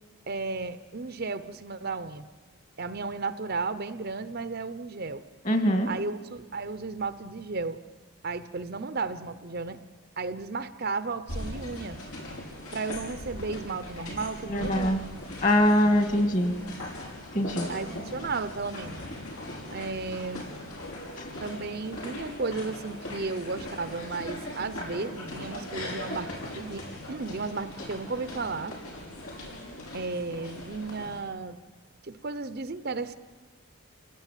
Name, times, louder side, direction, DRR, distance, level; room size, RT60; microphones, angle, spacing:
voice 1, 0.3-2.3 2.8-5.2 5.9-7.8 8.2-9.8 10.2-12.0 12.7-15.0 17.7-19.0 19.7-20.5 21.4-28.7 29.9-31.6 32.0-33.1, right 3 dB, 45° right, 12 dB, 0.7 m, -34 dB
voice 2, 5.4-5.9 14.5-15.0 15.4-16.6 17.3-17.7 21.2-21.3, equal, 35° left, 7 dB, 2.0 m, -23 dB
sound 1, 11.3-31.2, left 1 dB, 80° left, 6.1 m, -40 dB
27.5 x 18.0 x 9.1 m, 1.4 s
head